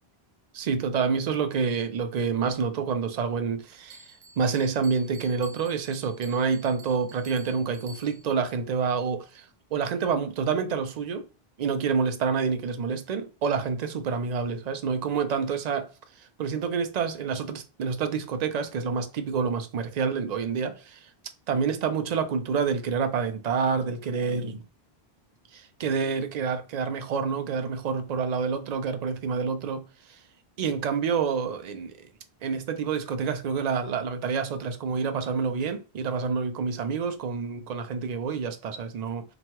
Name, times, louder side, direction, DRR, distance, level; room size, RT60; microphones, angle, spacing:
voice 1, 0.5-4.1 4.4-9.5 9.7-11.3 11.6-15.9 16.2-21.1 21.5-24.6 25.5-29.8 30.6-32.1 32.4-39.2, right 5 dB, 55° right, 0.5 m, -28 dB
Bell, 3.9-8.4, right 2 dB, 80° right, 0.9 m, -50 dB
2.9 x 2.3 x 2.9 m
omnidirectional pair, 1.0 m